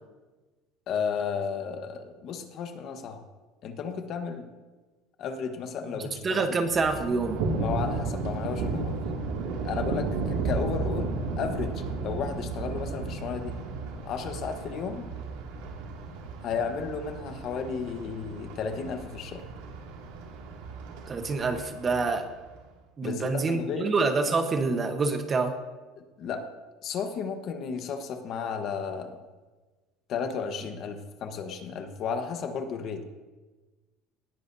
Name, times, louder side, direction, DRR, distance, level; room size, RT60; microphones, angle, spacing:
voice 1, 0.9-3.2 3.6-4.5 5.2-6.4 7.6-9.0 9.6-13.6 14.0-15.1 16.4-19.5 23.0-23.9 26.0-26.5 26.8-29.2 30.1-33.0, left 6 dB, 45° left, 6 dB, 1.2 m, -33 dB
voice 2, 6.2-7.4 21.1-22.3 23.0-25.6, right 4 dB, 25° right, 6 dB, 1.1 m, -26 dB
Thunder, 6.7-22.6, right 3 dB, 85° right, 2.3 m, -34 dB
18.5 x 14.0 x 2.8 m, 1.2 s
cardioid pair, 150°, 0 cm